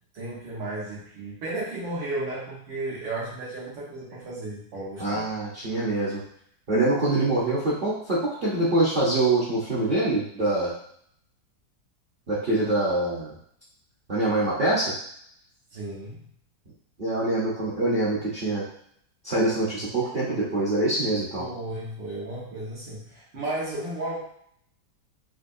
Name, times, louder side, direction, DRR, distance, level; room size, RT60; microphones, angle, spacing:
voice 1, 0.1-5.3 15.7-16.3 21.4-24.2, right 2 dB, 75° right, -6 dB, 2.0 m, -34 dB
voice 2, 5.0-6.2 6.7-10.7 12.3-13.4 14.1-14.9 17.0-18.6 19.2-21.5, right 2 dB, 45° right, -8 dB, 0.7 m, -24 dB
5.1 x 2.2 x 2.6 m, 0.67 s
omnidirectional pair, 2.0 m